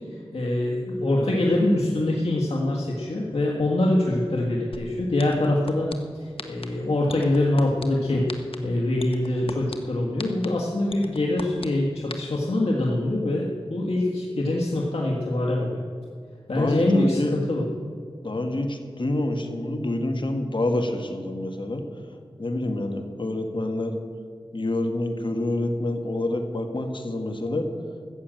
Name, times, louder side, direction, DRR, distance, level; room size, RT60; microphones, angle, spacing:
voice 1, 0.3-5.9 6.2-8.3 8.6-15.8 16.5-17.2 17.5-17.6, left 1 dB, 90° left, -3 dB, 1.6 m, -24 dB
sound 1, 4.7-4.8 5.2-5.9 6.4-6.6 7.1-7.8 8.3-8.6 9.0-9.7 10.2-10.5 10.9-11.7 12.1-12.2, left 3 dB, 70° left, 1.2 m, -34 dB
voice 2, 16.6-17.3 18.2-21.8 22.4-23.9 24.5-27.7, left 1 dB, 55° left, 5 dB, 1.8 m, -27 dB
14.5 x 7.6 x 9.0 m, 2.2 s
wide cardioid pair, 50°, 10 cm